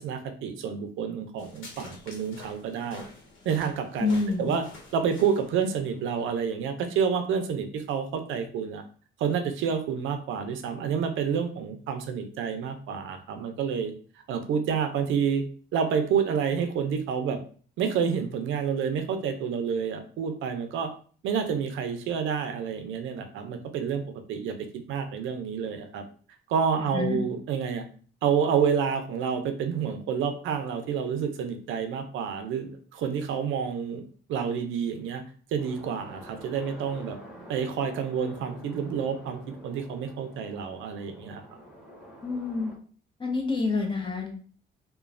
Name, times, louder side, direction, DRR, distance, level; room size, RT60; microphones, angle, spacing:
voice 1, 0.0-3.0 3.5-4.6 4.9-8.8 9.2-13.9 14.3-15.4 15.7-17.4 17.8-20.9 21.2-24.0 24.3-26.0 26.5-27.8 28.2-34.0 34.3-35.2 35.5-37.2 37.5-41.4, right 7 dB, 80° right, 7 dB, 0.5 m, -29 dB
sound 1, 1.4-6.4, left 2 dB, 80° left, 0.9 m, -48 dB
voice 2, 4.0-4.5 26.8-27.2 42.2-42.7 43.2-44.4, left 4 dB, 25° left, 1 dB, 0.8 m, -28 dB
sound 2, 35.6-42.8, right 1 dB, 5° right, 1.1 m, -48 dB
3.0 x 2.1 x 2.5 m, 0.43 s
cardioid pair, 90°, 20 cm